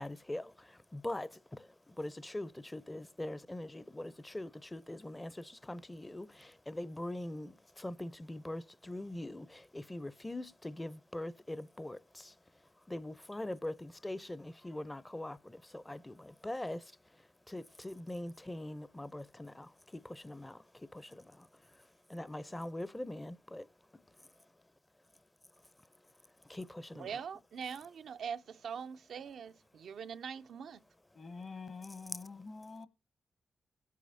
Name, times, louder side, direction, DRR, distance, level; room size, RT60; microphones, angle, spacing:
voice 1, 0.0-12.3 12.9-16.8 17.5-20.6 20.9-21.5 22.1-23.7 26.5-27.1, left 1 dB, 15° left, 0.6 m, -42 dB
voice 2, 26.9-30.8, right 7 dB, 75° right, 0.5 m, -43 dB
voice 3, 31.1-32.9, left 4 dB, 50° left, 1.2 m, -46 dB
21.0 x 8.4 x 2.6 m
cardioid pair, 70°, 0 cm